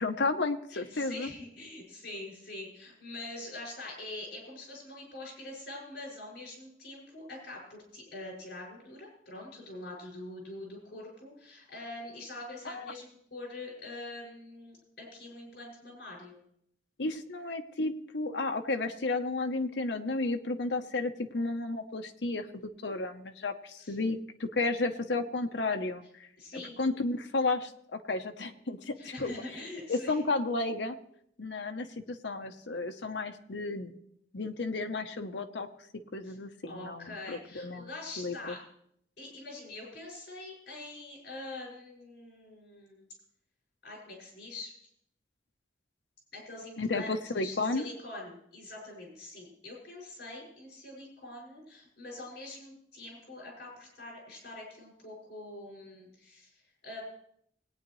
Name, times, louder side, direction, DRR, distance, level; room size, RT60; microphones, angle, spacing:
voice 1, 0.0-1.3 12.7-12.9 17.0-22.5 22.8-26.3 26.8-29.3 29.9-31.0 31.4-33.9 34.3-35.7 36.1-37.9 38.2-38.6 46.8-47.8, left 3 dB, 85° left, 7 dB, 0.9 m, -32 dB
voice 2, 0.7-16.4 23.8-24.0 26.4-26.8 29.0-30.2 36.2-36.4 36.7-38.6 39.2-43.1 43.8-44.7 46.3-57.0, left 2 dB, 65° left, -2 dB, 6.1 m, -44 dB
20.5 x 9.3 x 3.1 m, 0.70 s
head